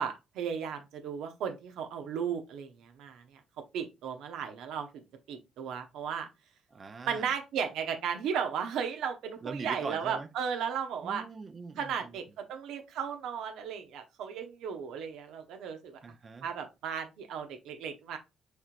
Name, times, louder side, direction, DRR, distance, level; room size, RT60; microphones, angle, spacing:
voice 1, 0.0-3.4 3.7-4.9 5.3-6.3 7.1-11.2 11.8-16.0 16.4-18.2, right 7 dB, 90° right, 0.8 m, -35 dB
voice 2, 6.7-7.3 9.4-10.3 11.0-12.2 16.0-16.5, right 4 dB, 40° right, 0.6 m, -42 dB
6.3 x 3.2 x 2.5 m
cardioid pair, 90°, 0 cm